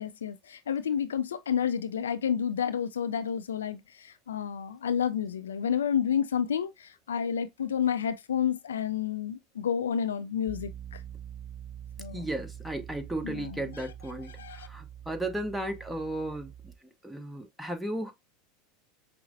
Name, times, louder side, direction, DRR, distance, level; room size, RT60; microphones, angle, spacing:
voice 1, 0.0-11.0 12.0-12.3 13.2-13.8 14.4-14.7, left 8 dB, 85° left, 0.4 m, -30 dB
Piano, 10.5-16.8, right 10 dB, 25° right, 0.3 m, -45 dB
voice 2, 12.1-16.7 17.0-18.1, right 1 dB, 5° right, 0.9 m, -35 dB
5.8 x 2.0 x 2.6 m
hypercardioid pair, 90°, 0 cm